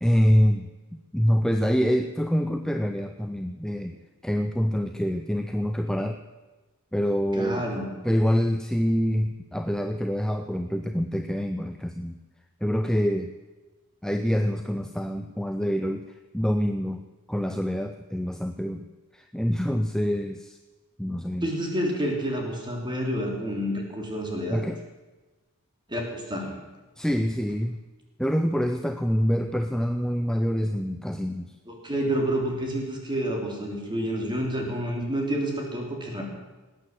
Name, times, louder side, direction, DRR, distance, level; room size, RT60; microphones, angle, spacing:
voice 1, 0.0-0.7 1.1-4.0 4.2-6.2 6.9-7.6 8.0-12.2 12.6-13.3 14.0-17.0 17.3-18.9 19.1-20.6 21.0-21.5 24.5-24.8 27.0-27.8 28.2-31.5, equal, 5° left, 6 dB, 0.5 m, -26 dB
voice 2, 7.3-8.0 21.4-24.6 25.9-26.6 31.7-36.2, equal, 20° right, 1 dB, 3.3 m, -29 dB
19.5 x 9.0 x 7.6 m, 1.2 s
head